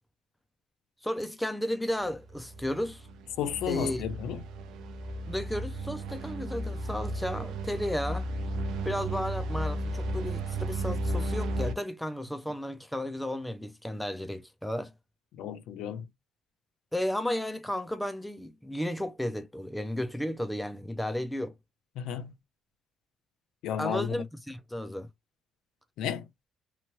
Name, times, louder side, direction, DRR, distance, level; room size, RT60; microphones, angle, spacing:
voice 1, 1.0-3.1 3.7-4.0 5.3-8.3 8.8-14.9 16.9-21.5 23.8-25.1, left 1 dB, 5° left, 0.3 m, -33 dB
sound 1, 2.1-11.7, right 1 dB, 75° right, 0.5 m, -34 dB
voice 2, 3.4-4.4 15.4-16.1 22.0-22.3 23.6-24.1 26.0-26.3, left 9 dB, 75° left, 0.5 m, -32 dB
2.9 x 2.2 x 3.0 m
cardioid pair, 170°, 0 cm